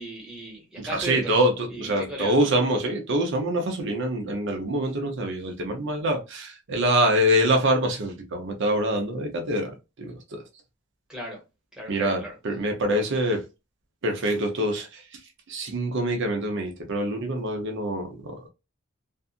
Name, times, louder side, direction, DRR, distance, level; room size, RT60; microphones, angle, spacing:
voice 1, 0.0-1.4 1.7-2.5 11.1-11.4 11.7-12.3, right 1 dB, 5° right, 1.1 m, -36 dB
voice 2, 0.8-10.4 11.9-13.5 14.0-15.2 15.5-18.5, right 1 dB, 60° right, 0.6 m, -25 dB
2.6 x 2.4 x 2.4 m
head